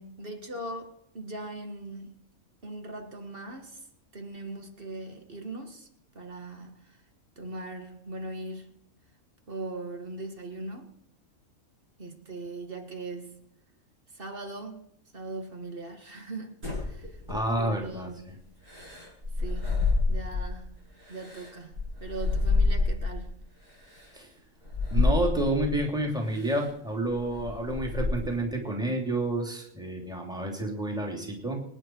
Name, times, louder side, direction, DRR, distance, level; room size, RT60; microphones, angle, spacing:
voice 1, 0.0-2.2 2.6-3.8 4.1-5.9 6.1-7.0 7.4-8.7 9.5-10.9 12.0-13.4 14.1-14.9 15.1-17.2 17.6-18.3 19.4-20.8 21.1-23.4, right 2 dB, 40° right, 2.0 m, -40 dB
sound 1, 16.6-17.8 18.7-20.6 21.0-23.3 23.9-24.1 24.6-25.8 26.3-26.7 27.1-28.4, left 3 dB, 75° right, 8.7 m, -28 dB
voice 2, 17.3-18.4 24.1-24.3 24.9-31.6, right 1 dB, 5° right, 3.0 m, -29 dB
26.5 x 9.5 x 4.7 m
omnidirectional pair, 1.5 m